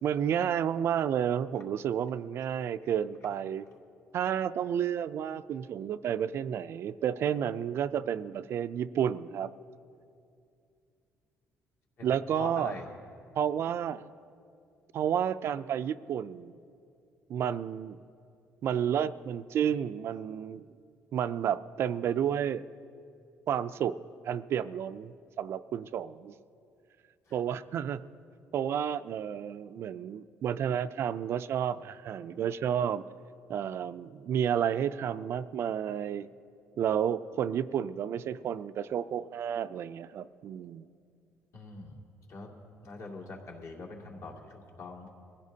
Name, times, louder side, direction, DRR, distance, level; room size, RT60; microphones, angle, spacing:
voice 1, 0.0-3.7 4.1-9.5 12.0-12.8 13.4-14.0 14.9-16.6 17.3-18.0 18.6-20.6 21.1-22.7 23.5-24.0 24.2-26.3 27.3-28.0 28.5-33.0 33.5-36.3 36.8-40.9, right 9 dB, 55° right, 14 dB, 0.3 m, -31 dB
voice 2, 12.0-12.9 27.3-27.4 41.5-42.0 42.3-42.5 42.8-45.1, left 3 dB, 65° left, -1 dB, 2.3 m, -43 dB
23.0 x 15.5 x 2.8 m, 2.4 s
cardioid pair, 135°, 5 cm